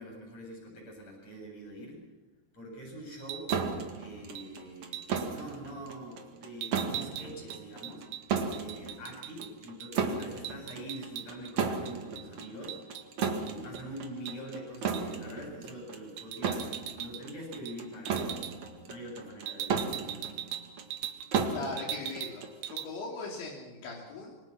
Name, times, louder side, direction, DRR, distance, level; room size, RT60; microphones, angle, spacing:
voice 1, 0.0-2.0 2.5-3.5 4.0-8.1 8.5-12.8 13.1-16.7 17.0-18.4 18.9-20.3, right 1 dB, 35° left, 0 dB, 8.9 m, -44 dB
sound 1, 3.2-3.7 4.4-4.5 4.9-5.2 6.6-9.5 9.8-9.9 10.2-11.5 11.9-13.8 14.3-14.4 14.9-15.2 16.2-17.2 17.5-17.8 18.1-18.5 19.5-21.5 21.8-22.4 22.6-22.9, right 12 dB, 85° right, 3.7 m, -40 dB
sound 2, 3.5-22.9, right 5 dB, 50° right, 2.6 m, -35 dB
voice 2, 21.5-24.4, left 3 dB, 80° left, -1 dB, 5.6 m, -39 dB
27.0 x 24.5 x 6.0 m, 1.1 s
omnidirectional pair, 5.2 m